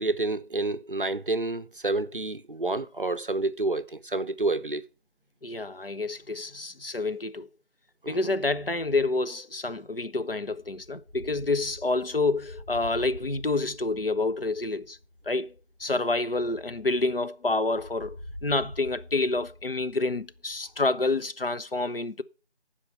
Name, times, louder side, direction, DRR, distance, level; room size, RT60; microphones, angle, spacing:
voice 1, 0.0-4.8 8.0-8.3, right 2 dB, 50° right, 0.6 m, -29 dB
voice 2, 5.4-7.5 8.1-15.0 15.3-15.5 15.8-22.2, left 3 dB, 55° left, 0.6 m, -28 dB
sound 1, 10.6-17.2 17.7-20.9, left 1 dB, 25° left, 2.5 m, -46 dB
12.0 x 4.9 x 5.5 m
figure-of-eight pair, 175°, 33 cm